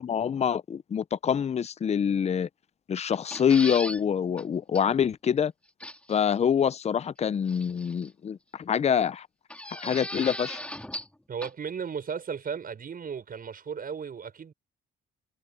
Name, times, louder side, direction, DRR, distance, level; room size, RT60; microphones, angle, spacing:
voice 1, 0.0-2.5 2.9-5.5 6.1-9.3 9.7-10.6, left 8 dB, 35° left, 0.5 m, -26 dB
sound 1, 3.1-4.0 4.4-4.5 4.7-4.8 5.8-6.2 7.5-8.1 9.5-11.1 11.4-11.5, left 1 dB, 5° left, 3.0 m, -37 dB
voice 2, 11.3-14.5, right 6 dB, 45° right, 6.0 m, -35 dB
cardioid pair, 90°, 20 cm